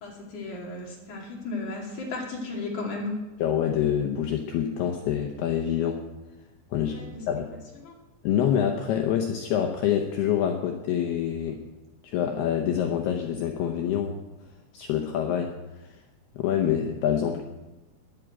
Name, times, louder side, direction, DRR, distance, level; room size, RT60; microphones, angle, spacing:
voice 1, 0.0-3.2 6.8-7.1 7.5-7.9, left 3 dB, 45° left, -1 dB, 3.3 m, -35 dB
voice 2, 3.4-6.0 6.7-6.9 7.3-7.5 8.2-11.6 12.0-14.2 14.7-16.0 16.4-17.4, left 9 dB, 85° left, 3 dB, 2.3 m, -26 dB
11.5 x 11.5 x 9.0 m, 1.1 s
omnidirectional pair, 6.0 m